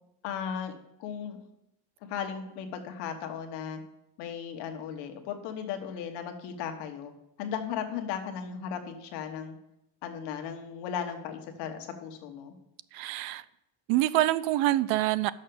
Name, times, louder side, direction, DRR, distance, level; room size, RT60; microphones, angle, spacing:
voice 1, 0.2-1.4 2.1-3.8 4.2-7.1 7.4-9.6 10.0-12.5, left 8 dB, 65° left, 1.2 m, -36 dB
voice 2, 12.9-13.4 13.9-15.3, right 15 dB, 85° right, 0.5 m, -26 dB
6.5 x 5.7 x 6.9 m
cardioid pair, 175°, 45 cm